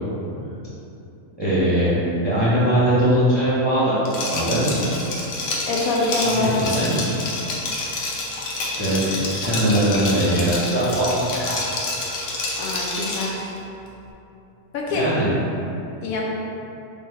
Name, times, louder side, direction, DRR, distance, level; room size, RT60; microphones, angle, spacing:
voice 1, 1.4-1.9 2.2-3.9 4.3-4.7 6.2-6.9 8.6-11.1 11.3-11.5 14.9-15.3, right 1 dB, 35° right, -11 dB, 0.4 m, -21 dB
Liquid, 4.1-13.4, left 2 dB, 65° left, 0.9 m, -28 dB
voice 2, 5.6-6.6 12.6-13.5 14.7-15.1 16.0-16.2, left 2 dB, 90° left, -3 dB, 1.1 m, -24 dB
3.3 x 2.2 x 4.3 m, 2.9 s
omnidirectional pair, 1.5 m